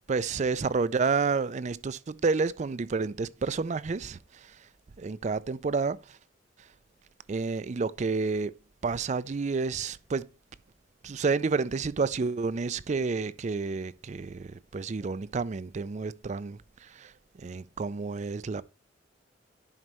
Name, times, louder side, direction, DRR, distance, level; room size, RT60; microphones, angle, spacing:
voice 1, 0.1-4.6 5.0-6.2 7.3-8.5 8.8-10.3 11.0-17.1 17.4-18.6, right 4 dB, 40° right, 0.4 m, -30 dB
11.0 x 5.3 x 3.0 m
head